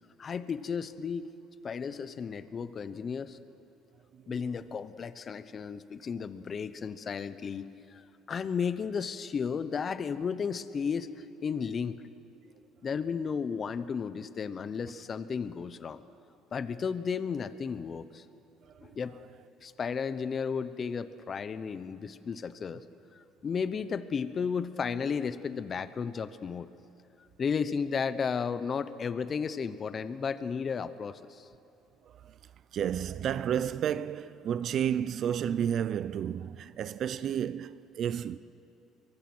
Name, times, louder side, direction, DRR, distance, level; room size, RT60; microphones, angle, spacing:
voice 1, 0.2-1.3 1.6-3.4 4.3-8.0 8.3-12.0 12.8-16.0 16.5-18.2 18.8-19.2 19.6-22.8 23.1-26.7 27.4-31.5, left 6 dB, 35° left, 0.8 m, -34 dB
voice 2, 32.0-32.4 32.7-38.4, right 9 dB, 50° right, 0.5 m, -31 dB
23.5 x 23.0 x 6.2 m
cardioid pair, 130°, 0 cm